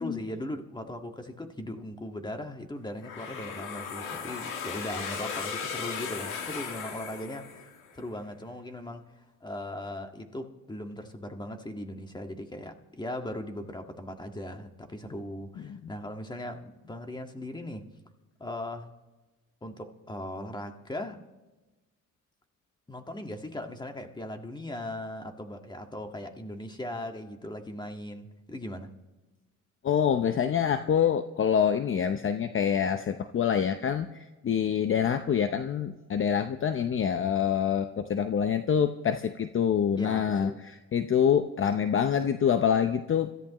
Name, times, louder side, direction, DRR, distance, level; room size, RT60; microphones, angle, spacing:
voice 1, 0.0-7.7 7.9-17.9 18.4-18.9 19.6-21.2 22.9-28.9 40.0-40.6, left 1 dB, 15° left, 1.7 m, -38 dB
sound 1, 3.0-7.9, left 6 dB, 85° left, 2.2 m, -36 dB
voice 2, 29.8-34.1 34.4-40.5 40.9-43.3, left 8 dB, 45° left, 0.7 m, -26 dB
26.0 x 14.0 x 3.0 m
cardioid pair, 90°, 30 cm